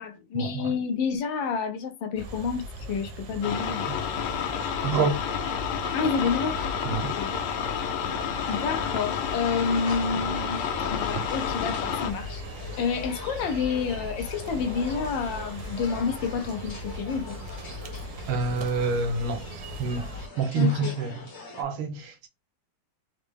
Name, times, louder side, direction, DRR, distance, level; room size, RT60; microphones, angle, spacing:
voice 1, 0.0-3.8 4.2-4.3 5.9-6.6 6.9-7.4 8.5-10.6 10.9-12.4 12.8-17.4 20.6-20.9, left 5 dB, 75° left, 1.3 m, -29 dB
sound 1, 2.2-20.3, equal, 65° right, 1.0 m, -39 dB
sound 2, 3.4-12.1, left 8 dB, 90° left, 1.6 m, -30 dB
voice 2, 4.8-5.2 6.8-7.1 11.1-11.2 18.3-19.4 19.8-20.1 20.4-21.2 21.6-22.3, right 4 dB, 85° right, 1.7 m, -27 dB
sound 3, 9.7-21.6, left 4 dB, 45° left, 1.0 m, -43 dB
4.3 x 2.0 x 3.4 m
omnidirectional pair, 2.4 m